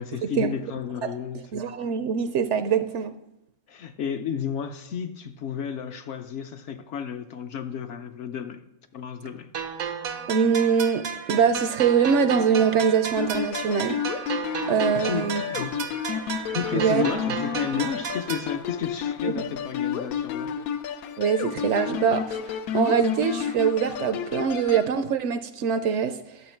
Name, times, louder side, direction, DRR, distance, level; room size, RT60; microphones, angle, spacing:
voice 1, 0.0-1.5 3.7-8.6 8.9-9.5 14.9-15.8 16.5-20.5, left 7 dB, 65° left, 7 dB, 0.8 m, -32 dB
voice 2, 1.5-3.1 10.3-14.0 14.7-15.4 16.7-17.0 19.2-19.5 21.2-26.2, right 7 dB, 65° right, 10 dB, 0.8 m, -23 dB
sound 1, 9.5-18.5, right 7 dB, 85° right, 1.2 m, -33 dB
sound 2, 13.2-24.9, left 8 dB, 90° left, 1.1 m, -31 dB
11.0 x 6.4 x 4.4 m, 0.86 s
omnidirectional pair, 1.5 m